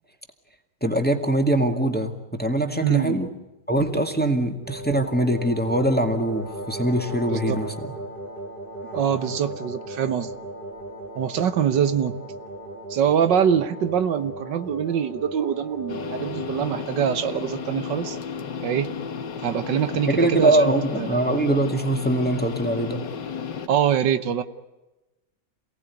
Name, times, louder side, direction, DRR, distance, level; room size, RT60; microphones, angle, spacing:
voice 1, 0.8-3.3 3.7-7.9 20.1-23.0, right 1 dB, 5° left, 6 dB, 2.0 m, -23 dB
voice 2, 2.8-3.2 7.3-7.6 8.9-10.3 11.2-12.2 12.9-18.2 18.6-18.9 19.4-21.2 23.7-24.4, right 8 dB, 80° right, 12 dB, 1.8 m, -24 dB
sound 1, 4.6-16.9, right 1 dB, 30° right, 2.1 m, -37 dB
sound 2, 15.9-23.7, left 6 dB, 80° left, 2.1 m, -33 dB
28.0 x 18.0 x 9.5 m, 1.0 s
omnidirectional pair, 1.9 m